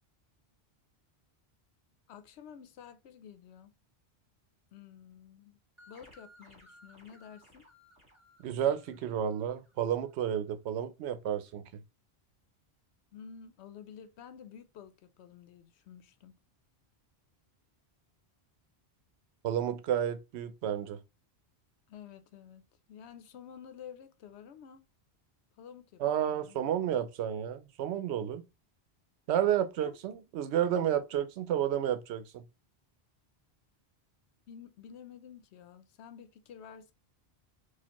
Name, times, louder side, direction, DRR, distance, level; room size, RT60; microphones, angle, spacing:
voice 1, 2.1-3.7 4.7-5.6 5.9-7.7 13.1-16.4 21.9-22.6 22.9-24.8 25.5-26.6 29.8-30.0 34.5-36.9, left 8 dB, 85° left, 0.9 m, -51 dB
sound 1, 5.8-10.1, equal, 30° right, 1.4 m, -60 dB
voice 2, 8.4-11.8 19.4-21.0 26.0-28.4 29.3-32.4, right 10 dB, 85° right, 0.8 m, -31 dB
4.2 x 2.4 x 2.9 m
omnidirectional pair, 1.1 m